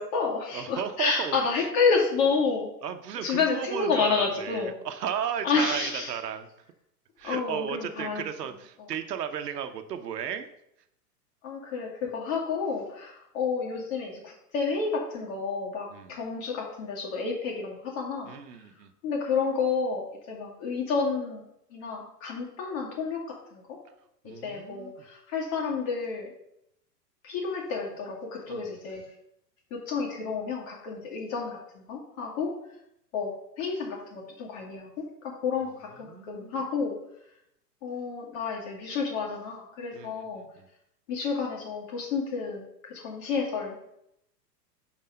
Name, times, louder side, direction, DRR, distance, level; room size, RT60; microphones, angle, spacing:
voice 1, 0.0-2.7 3.2-4.7 5.4-6.1 7.2-8.3 8.8-8.9 11.4-18.3 19.0-21.4 21.7-23.8 24.4-26.3 27.2-29.0 29.7-32.5 33.1-37.0 37.8-40.4 41.1-43.9, left 5 dB, 55° left, -2 dB, 2.5 m, -30 dB
voice 2, 0.5-1.7 2.8-6.5 7.2-10.5 15.9-16.2 18.2-18.9 24.2-25.1 28.5-28.6 36.0-36.6 39.9-40.7, right 8 dB, 75° right, 9 dB, 0.9 m, -35 dB
5.4 x 4.8 x 5.2 m, 0.78 s
hypercardioid pair, 105°, 49 cm